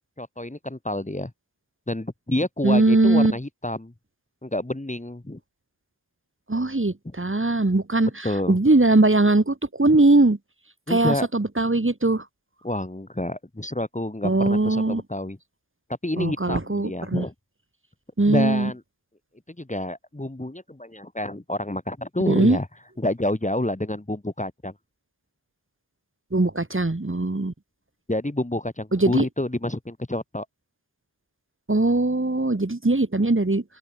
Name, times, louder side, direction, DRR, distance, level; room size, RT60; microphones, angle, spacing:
voice 1, 0.2-1.3 1.9-3.9 4.4-5.4 7.0-7.1 8.2-8.6 9.9-10.0 10.9-11.3 12.6-15.4 16.0-17.3 18.2-18.8 19.6-22.7 23.0-24.7 28.1-30.5, left 1 dB, 20° left, 2.7 m, -28 dB
voice 2, 2.6-3.3 6.5-10.4 10.9-12.2 14.2-15.0 16.2-17.3 18.2-18.7 22.3-22.6 26.3-27.5 28.9-29.3 31.7-33.6, right 2 dB, 30° right, 3.1 m, -20 dB
open air
wide cardioid pair, 45°, 40 cm